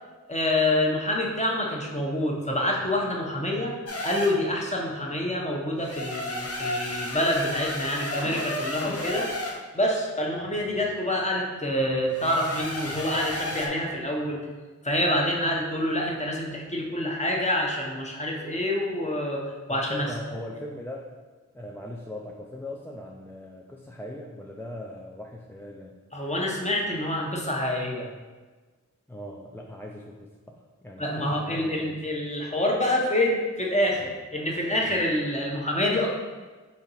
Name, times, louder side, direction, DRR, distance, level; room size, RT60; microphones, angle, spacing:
voice 1, 0.3-3.7 4.0-9.3 9.7-14.4 14.8-20.1 26.1-28.1 31.0-36.1, left 1 dB, 20° left, -1 dB, 0.8 m, -27 dB
sound 1, 3.9-4.4 5.8-9.6 12.1-13.7, left 1 dB, 50° left, 0.6 m, -33 dB
voice 2, 19.7-21.1 21.5-26.0 29.1-32.0, left 1 dB, 5° left, -2 dB, 0.4 m, -39 dB
4.2 x 2.9 x 4.1 m, 1.3 s
wide cardioid pair, 45°, 30 cm